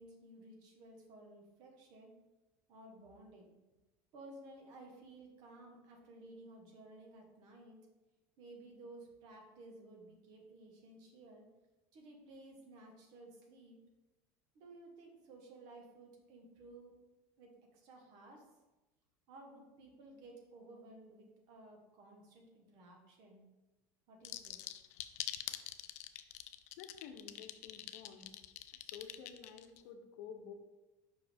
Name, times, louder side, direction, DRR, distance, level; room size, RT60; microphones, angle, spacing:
voice 1, 0.0-2.1 2.7-3.5 4.1-7.8 8.4-11.5 11.9-13.8 14.5-16.9 17.4-18.5 19.3-23.4 24.1-24.6, right 2 dB, 60° right, 2 dB, 1.4 m, -56 dB
sound 1, 24.2-29.8, left 14 dB, 90° left, 0.4 m, -44 dB
voice 2, 26.8-28.4 28.9-30.5, left 7 dB, 70° left, 6 dB, 0.8 m, -51 dB
5.4 x 4.9 x 3.5 m, 1.1 s
supercardioid pair, 130°, 8 cm